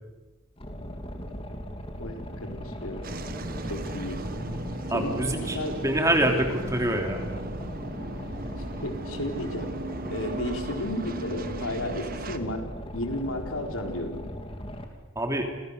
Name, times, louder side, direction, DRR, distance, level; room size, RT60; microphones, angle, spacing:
Boat Water vehicle, 0.6-14.8, equal, 25° left, 3.3 m, -38 dB
voice 1, 2.0-3.1 3.7-4.2 4.9-5.8 8.8-9.7 10.1-12.7 12.9-14.2, left 1 dB, 90° left, 3 dB, 4.5 m, -33 dB
sound 1, 3.0-12.4, right 2 dB, 45° right, 1.5 m, -37 dB
voice 2, 4.9-7.2 15.1-15.5, right 1 dB, 15° right, 3 dB, 3.1 m, -26 dB
30.0 x 27.5 x 6.8 m, 1.2 s
head